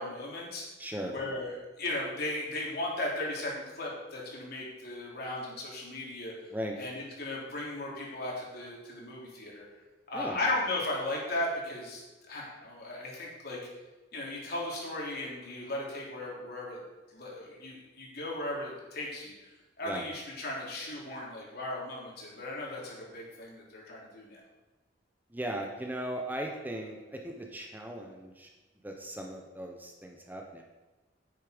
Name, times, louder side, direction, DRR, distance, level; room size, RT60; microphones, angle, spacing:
voice 1, 0.0-0.6 1.1-6.3 6.8-9.7 10.1-12.0 12.3-13.6 14.1-16.8 17.1-19.5 19.8-24.4, left 2 dB, 60° left, -3 dB, 3.6 m, -36 dB
voice 2, 0.8-1.2 6.5-6.8 10.1-10.4 19.8-20.0 25.3-28.5 28.8-30.6, right 1 dB, 10° right, 1 dB, 1.1 m, -38 dB
9.7 x 9.4 x 5.3 m, 1.1 s
head